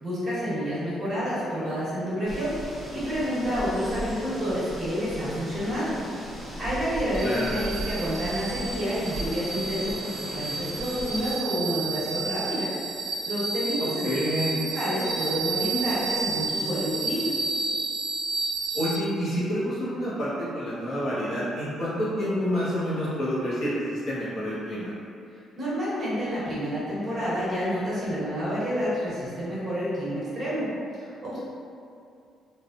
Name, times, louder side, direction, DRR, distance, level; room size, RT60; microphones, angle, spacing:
voice 1, 0.0-6.0 6.6-12.7 13.0-17.3 25.6-30.7 30.9-31.4, equal, 30° right, -10 dB, 1.2 m, -29 dB
sound 1, 2.2-11.3, equal, 15° left, 1.2 m, -37 dB
sound 2, 7.1-19.0, right 4 dB, 55° right, 0.3 m, -31 dB
voice 2, 7.2-7.5 13.8-14.5 18.7-24.9, equal, 60° left, -9 dB, 1.0 m, -28 dB
3.6 x 2.6 x 2.4 m, 2.5 s
cardioid pair, 145°, 0 cm